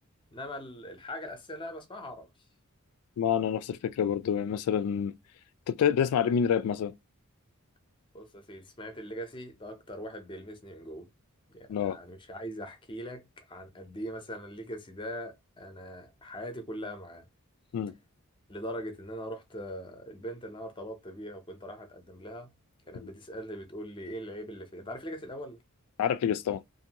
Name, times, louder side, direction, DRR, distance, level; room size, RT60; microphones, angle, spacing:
voice 1, 0.3-2.3 8.1-11.1 11.5-17.3 18.5-22.5 22.9-25.6, equal, 20° left, 0.6 m, -41 dB
voice 2, 3.2-5.1 5.7-6.9 11.7-12.0 17.7-17.9 26.0-26.6, left 8 dB, 80° left, 0.3 m, -27 dB
2.6 x 2.6 x 2.8 m
head